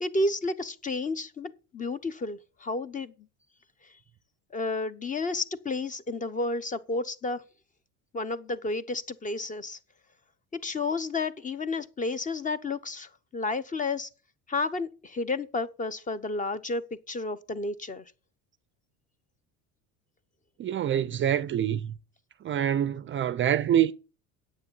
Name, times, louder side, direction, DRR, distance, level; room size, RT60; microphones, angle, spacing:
voice 1, 0.0-3.1 4.5-7.4 8.1-9.8 10.5-14.1 14.5-18.0, left 3 dB, 20° left, 0.9 m, -31 dB
voice 2, 20.6-21.9 22.4-23.9, right 10 dB, 35° right, 0.5 m, -25 dB
9.6 x 8.1 x 6.9 m
cardioid pair, 125°, 36 cm